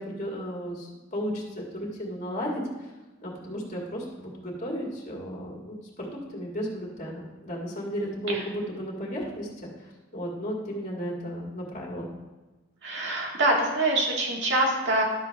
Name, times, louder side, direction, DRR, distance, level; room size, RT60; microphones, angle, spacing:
voice 1, 0.0-2.9 3.2-12.1, equal, 40° left, -2 dB, 2.0 m, -34 dB
voice 2, 12.8-15.0, right 1 dB, 60° right, -1 dB, 2.0 m, -25 dB
11.5 x 7.0 x 3.5 m, 1.2 s
head